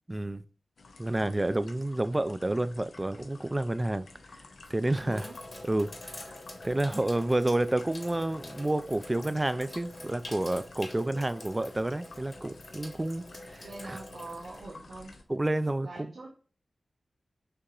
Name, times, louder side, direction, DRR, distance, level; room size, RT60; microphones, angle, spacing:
voice 1, 0.1-0.4 1.0-4.1 4.7-5.3 5.6-6.3 6.6-14.0 15.3-16.1, right 1 dB, 20° right, 0.3 m, -30 dB
sound 1, 0.8-15.2, left 3 dB, 90° left, 0.6 m, -52 dB
Sink (filling or washing), 3.5-3.9 4.5-15.5, left 1 dB, 40° left, 1.3 m, -46 dB
voice 2, 5.0-5.3 13.6-15.1 15.8-16.3, right 2 dB, 85° right, 1.1 m, -43 dB
6.5 x 2.9 x 2.4 m
wide cardioid pair, 90°, 0 cm